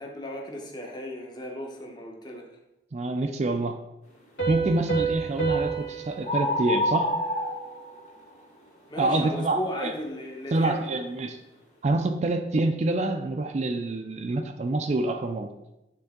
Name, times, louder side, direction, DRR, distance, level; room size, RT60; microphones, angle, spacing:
voice 1, 0.0-2.5 8.9-10.8, left 1 dB, 25° left, 0 dB, 1.0 m, -35 dB
voice 2, 2.9-3.8 4.5-7.1 9.0-9.9 10.5-11.4 11.8-15.5, right 2 dB, 40° right, 6 dB, 0.4 m, -26 dB
Piano, 4.4-7.8, right 6 dB, 80° left, 2.2 m, -31 dB
sound 1, 5.5-5.8 6.2-8.3, left 1 dB, 45° left, 2.0 m, -28 dB
9.3 x 3.7 x 3.6 m, 0.93 s
head